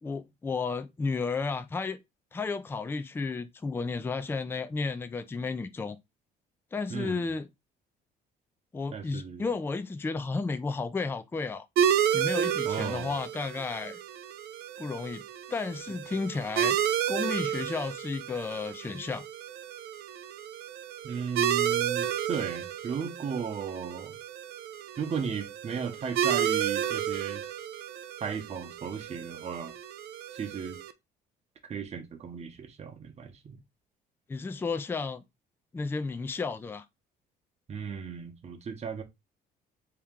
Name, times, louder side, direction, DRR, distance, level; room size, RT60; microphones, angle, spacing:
voice 1, 0.0-2.0 2.3-6.0 6.7-7.5 8.7-11.7 12.1-14.0 14.8-15.2 15.5-16.8 17.1-19.2 34.3-35.2 35.7-36.8, left 4 dB, 15° left, 0.4 m, -33 dB
voice 2, 6.9-7.2 8.9-9.5 12.6-13.1 21.0-24.1 25.0-27.4 28.2-29.7 30.3-30.8 31.7-33.6 37.7-39.0, right 6 dB, 40° right, 0.9 m, -35 dB
sound 1, 11.8-30.9, right 9 dB, 70° right, 0.5 m, -31 dB
3.5 x 2.9 x 3.6 m
cardioid pair, 110°, 17 cm